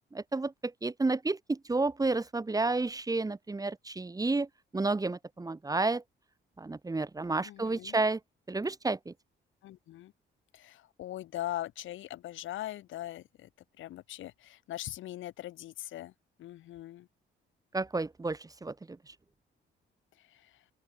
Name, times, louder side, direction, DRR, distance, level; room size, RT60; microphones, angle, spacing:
voice 1, 0.1-4.5 4.7-6.0 6.6-8.2 8.5-9.1 17.7-19.1, right 3 dB, 20° right, 1.1 m, -31 dB
voice 2, 7.4-8.0 9.6-10.1 10.5-13.5 13.8-16.1 16.4-17.1 20.3-20.5, left 14 dB, 75° left, 1.1 m, -41 dB
open air
cardioid pair, 90°, 20 cm